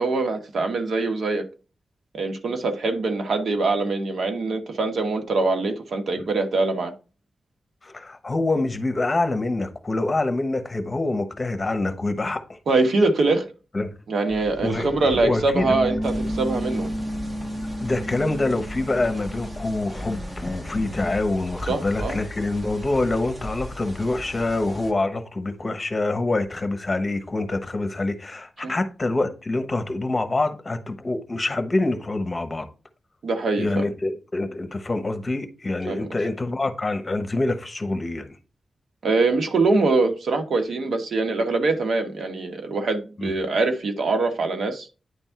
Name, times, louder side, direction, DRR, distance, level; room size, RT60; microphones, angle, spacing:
voice 1, 0.0-1.5 2.1-6.9 12.7-13.5 14.1-16.9 21.7-22.2 28.6-28.7 33.2-33.9 35.9-36.1 39.0-44.9, right 3 dB, 80° right, 1.2 m, -23 dB
voice 2, 7.8-12.4 13.7-13.9 14.6-14.9 15.1-15.7 17.8-32.7 33.6-38.3 43.2-43.3, left 2 dB, 30° left, 1.1 m, -26 dB
sound 1, 14.3-21.1, equal, 5° right, 0.9 m, -32 dB
sound 2, 16.0-24.9, left 1 dB, 25° right, 1.4 m, -38 dB
9.7 x 3.6 x 4.5 m
wide cardioid pair, 110°, 0 cm